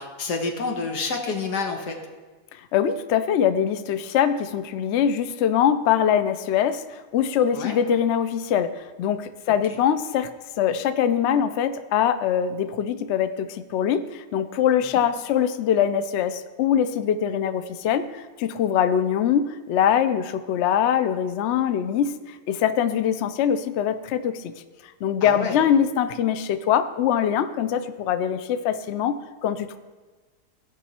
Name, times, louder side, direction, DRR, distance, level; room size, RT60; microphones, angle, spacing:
voice 1, 0.0-2.0 7.5-7.8 14.9-15.0 25.2-25.6, left 4 dB, 90° left, 2 dB, 1.9 m, -28 dB
voice 2, 2.7-10.3 10.6-24.5 25.0-29.8, left 9 dB, 65° left, 11 dB, 0.7 m, -23 dB
16.5 x 5.6 x 4.3 m, 1.3 s
omnidirectional pair, 1.7 m